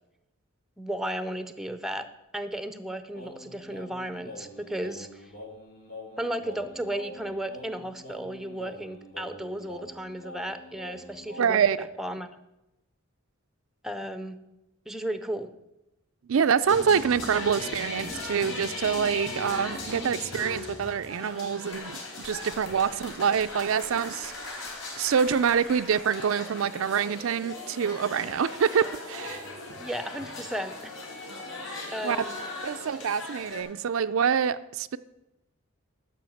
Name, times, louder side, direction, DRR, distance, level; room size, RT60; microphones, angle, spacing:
voice 1, 0.8-2.1 2.3-5.3 6.2-11.6 12.0-12.4 13.8-14.4 14.9-15.5 29.8-30.9 31.9-32.4, right 1 dB, ahead, 10 dB, 0.6 m, -34 dB
Singing, 3.1-11.7, left 1 dB, 85° left, 2.8 m, -45 dB
voice 2, 11.4-11.9 16.3-24.7 25.0-29.4 32.0-32.2 32.6-35.0, right 7 dB, 75° right, 12 dB, 0.4 m, -26 dB
sound 1, 16.7-33.6, left 2 dB, 65° left, 3.9 m, -38 dB
12.0 x 5.6 x 7.7 m, 0.92 s
head